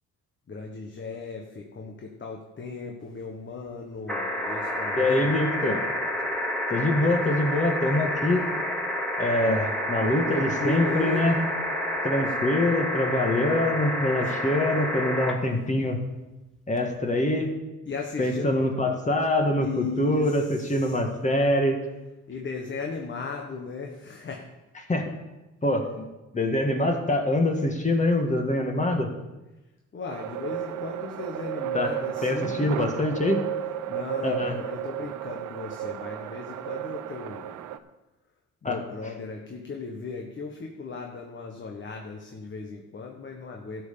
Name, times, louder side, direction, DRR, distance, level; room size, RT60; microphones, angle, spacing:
voice 1, 0.5-5.3 9.4-9.6 10.1-11.2 11.8-11.9 14.2-14.3 17.9-18.6 19.6-21.0 22.3-24.5 29.9-33.0 33.9-37.8 38.6-43.8, left 4 dB, 40° left, 1 dB, 1.4 m, -36 dB
sound 1, 4.1-15.3 16.8-16.9, equal, ahead, 2.4 m, -29 dB
voice 2, 5.0-5.8 6.7-8.5 9.2-11.4 12.0-16.0 16.7-17.5 18.2-21.8 24.9-25.1 25.6-26.0 26.3-29.1 31.7-31.9 32.2-33.4 34.2-34.6 38.6-38.8, left 1 dB, 25° left, 3 dB, 1.8 m, -24 dB
sound 2, 30.1-37.8, right 11 dB, 90° right, 0.6 m, -33 dB
13.0 x 5.7 x 7.0 m, 1.0 s
cardioid pair, 90°, 30 cm